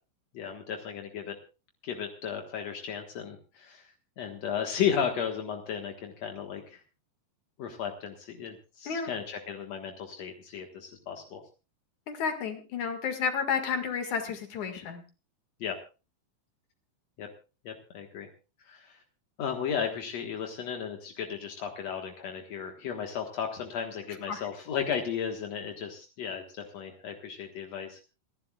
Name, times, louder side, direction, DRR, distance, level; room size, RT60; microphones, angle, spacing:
voice 1, 0.3-1.4 1.8-6.8 7.6-11.4 15.6-15.7 17.2-17.3 17.6-18.3 18.6-19.0 19.4-28.0, left 7 dB, 65° left, 3 dB, 1.6 m, -34 dB
voice 2, 12.1-15.0 24.3-24.4, left 6 dB, 50° left, 6 dB, 2.7 m, -31 dB
28.5 x 11.5 x 2.4 m, 0.32 s
omnidirectional pair, 5.3 m